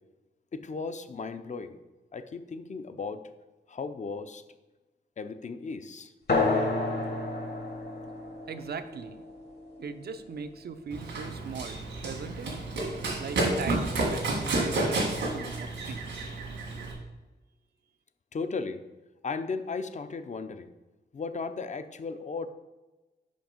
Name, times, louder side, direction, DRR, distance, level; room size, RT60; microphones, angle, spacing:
voice 1, 0.5-1.8 2.1-3.2 3.7-4.4 5.2-6.1 18.3-18.8 19.2-20.7 21.1-22.5, left 4 dB, 40° left, 10 dB, 0.6 m, -36 dB
sound 1, 6.3-11.3, left 3 dB, 65° left, 1.6 m, -31 dB
voice 2, 8.5-9.2 9.8-12.5 13.2-16.3, right 6 dB, 60° right, 10 dB, 0.6 m, -40 dB
Run, 10.9-16.9, right 2 dB, 85° right, 1.8 m, -30 dB
5.3 x 5.2 x 5.2 m, 1.1 s
cardioid pair, 55°, 18 cm